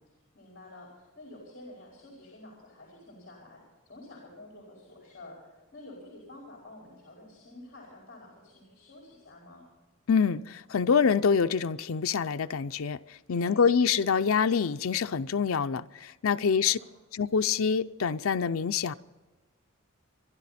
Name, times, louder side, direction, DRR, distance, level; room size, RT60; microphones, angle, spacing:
voice 1, 0.3-9.6 13.3-13.7 16.3-16.9, left 1 dB, 45° left, 4.8 m, -49 dB
voice 2, 10.1-13.0 13.3-16.8 17.1-18.9, left 6 dB, 80° left, 0.5 m, -26 dB
26.0 x 11.5 x 4.3 m
head